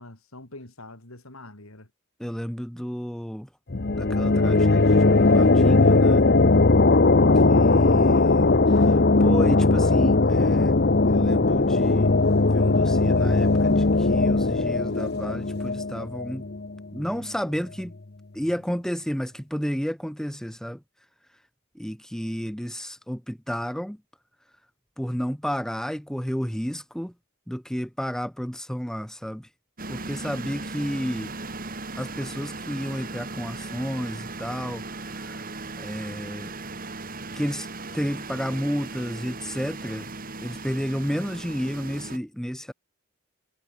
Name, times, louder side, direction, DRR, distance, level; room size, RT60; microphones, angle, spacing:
voice 1, 0.0-1.9 7.1-8.9, left 1 dB, 70° left, 4.0 m, -42 dB
voice 2, 2.2-3.5 4.0-6.3 7.5-10.8 11.0-16.5 16.9-17.9 18.3-21.4 21.7-24.0 25.0-27.1 27.5-29.5 29.9-31.4 32.0-35.5 35.7-36.5 37.3-40.1 40.4-42.7, equal, ahead, 1.1 m, -32 dB
sound 1, 3.7-17.1, left 3 dB, 45° left, 0.8 m, -19 dB
sound 2, 29.8-42.2, right 3 dB, 40° right, 3.0 m, -37 dB
head